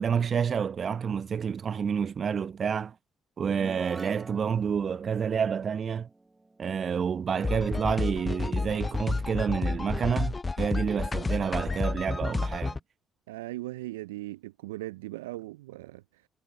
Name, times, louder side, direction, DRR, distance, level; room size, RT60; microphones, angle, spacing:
voice 1, 0.0-2.9 3.4-6.1 6.6-12.8, right 7 dB, 50° right, 0.8 m, -29 dB
sound 1, 3.5-7.1, right 2 dB, 20° right, 1.4 m, -46 dB
sound 2, 7.4-12.8, left 3 dB, 30° left, 0.3 m, -30 dB
voice 2, 13.3-16.3, right 18 dB, 85° right, 0.3 m, -39 dB
hypercardioid pair, 45°, 0 cm